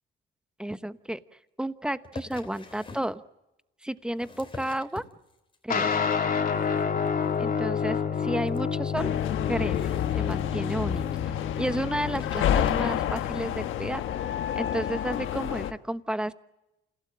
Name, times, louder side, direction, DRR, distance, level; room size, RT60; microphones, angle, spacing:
voice 1, 0.6-1.2 1.6-3.2 3.8-5.0 5.6-6.0 7.4-9.1 9.5-11.0 11.6-14.0 14.5-16.3, right 1 dB, 5° right, 12 dB, 1.0 m, -32 dB
sound 1, 2.0-3.1 4.0-5.5 5.9-6.4 6.6-6.8 7.1-7.2 7.3-7.4 7.8-7.9 8.5-8.6 9.5-10.9 11.6-11.7 12.0-13.1 13.9-14.0, left 3 dB, 25° left, 3.2 m, -44 dB
sound 2, 5.7-13.5, left 6 dB, 45° left, 3.1 m, -29 dB
sound 3, 9.0-15.7, left 10 dB, 80° left, 1.3 m, -29 dB
28.5 x 17.0 x 8.6 m, 0.98 s
cardioid pair, 90°, 20 cm